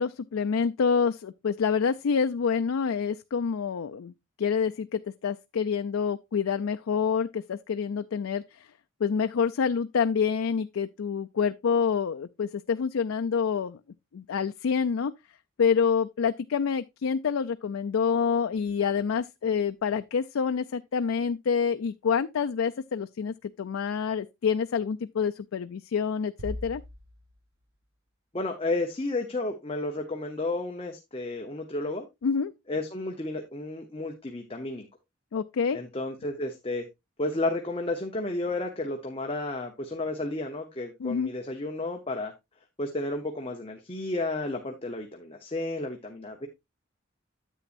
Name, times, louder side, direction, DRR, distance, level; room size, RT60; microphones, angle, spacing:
voice 1, 0.0-4.1 4.4-8.4 9.0-13.8 14.1-15.1 15.6-26.8 32.2-32.5 35.3-35.8 41.0-41.3, left 6 dB, 90° left, 0.4 m, -27 dB
sound 1, 26.4-27.8, left 1 dB, 85° right, 1.3 m, -40 dB
voice 2, 28.3-32.1 32.7-34.9 35.7-36.9 37.2-42.3 42.8-46.5, left 2 dB, 25° left, 0.9 m, -32 dB
9.9 x 8.3 x 2.5 m
head